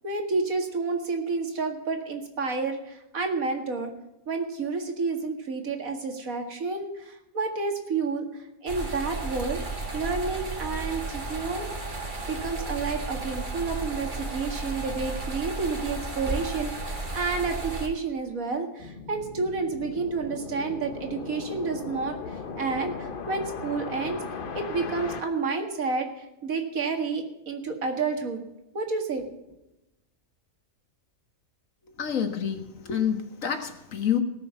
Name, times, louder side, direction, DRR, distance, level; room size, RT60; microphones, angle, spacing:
voice 1, 0.0-3.9 4.3-9.6 9.9-11.7 12.3-24.2 24.5-28.4 28.7-29.2, right 4 dB, 85° right, 4 dB, 2.4 m, -30 dB
sound 1, 8.7-17.9, right 2 dB, 35° right, 2.0 m, -33 dB
sound 2, 18.8-25.2, left 5 dB, 45° left, 1.1 m, -37 dB
voice 2, 31.9-34.2, left 8 dB, 70° left, 7 dB, 1.8 m, -28 dB
18.5 x 6.4 x 7.1 m, 0.92 s
omnidirectional pair, 1.4 m